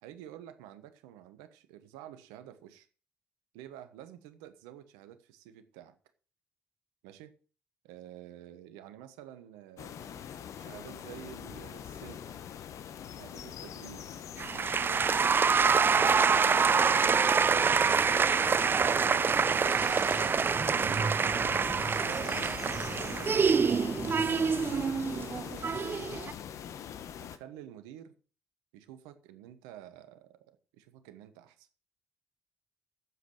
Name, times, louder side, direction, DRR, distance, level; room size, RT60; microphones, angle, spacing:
voice 1, 0.0-2.9 3.5-6.0 7.0-7.3 7.8-12.4 13.1-14.2 14.6-16.4 16.8-17.7 18.5-20.6 21.5-22.6 23.1-26.0 27.2-28.1 28.7-31.7, right 11 dB, 85° right, 1.2 m, -50 dB
sound 1, 9.8-27.4, left 9 dB, 70° left, 1.1 m, -43 dB
sound 2, 14.4-26.3, right 5 dB, 40° right, 0.5 m, -26 dB
9.8 x 7.6 x 7.7 m
hypercardioid pair, 50°, 6 cm